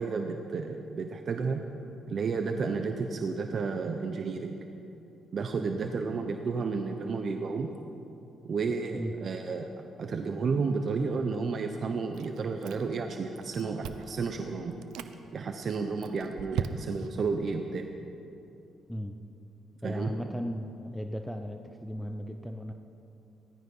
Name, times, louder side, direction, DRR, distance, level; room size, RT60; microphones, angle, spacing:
voice 1, 0.0-1.6 2.1-4.5 5.3-7.7 8.4-9.7 10.0-14.8 15.3-17.9 19.8-20.1, right 4 dB, 50° right, 5 dB, 1.0 m, -32 dB
voice 2, 8.9-9.2 18.9-19.2 19.8-22.7, equal, 5° left, 6 dB, 0.8 m, -36 dB
Chewing mastication, 12.1-13.1 13.4-14.2 14.7-15.1 15.7-17.2, right 9 dB, 90° right, 0.7 m, -37 dB
17.0 x 13.5 x 5.6 m, 2.7 s
cardioid pair, 90°, 0 cm